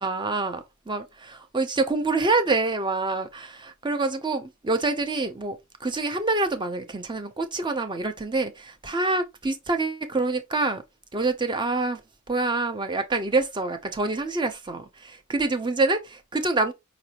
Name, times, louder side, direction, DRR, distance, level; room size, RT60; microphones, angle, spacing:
voice 1, 0.0-10.8 11.1-12.0 12.3-16.7, right 3 dB, 20° right, 0.6 m, -26 dB
4.9 x 2.6 x 2.9 m
head